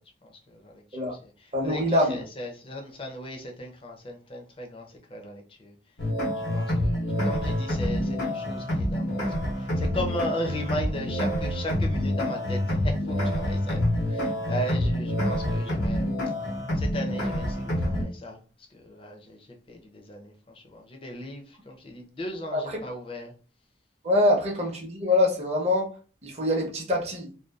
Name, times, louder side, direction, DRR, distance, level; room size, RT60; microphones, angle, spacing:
voice 1, 0.2-5.7 6.4-16.1 16.7-23.3, equal, 30° left, 0.5 m, -37 dB
voice 2, 1.5-2.2 22.5-22.6 24.0-27.3, left 1 dB, 35° right, 0.7 m, -24 dB
sound 1, 6.0-18.0, left 1 dB, 85° left, 0.9 m, -27 dB
2.6 x 2.3 x 2.2 m
head